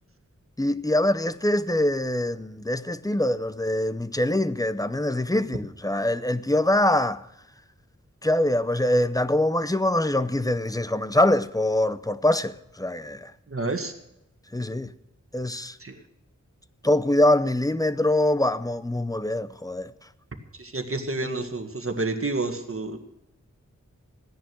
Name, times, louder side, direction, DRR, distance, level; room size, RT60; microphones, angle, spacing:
voice 1, 0.6-7.2 8.2-13.3 14.5-14.9 15.3-15.8 16.8-19.9, left 1 dB, 10° left, 0.7 m, -24 dB
voice 2, 13.5-13.9 15.8-16.0 20.5-23.0, right 2 dB, 45° right, 1.9 m, -29 dB
16.0 x 10.5 x 6.2 m
wide cardioid pair, 80°, 30 cm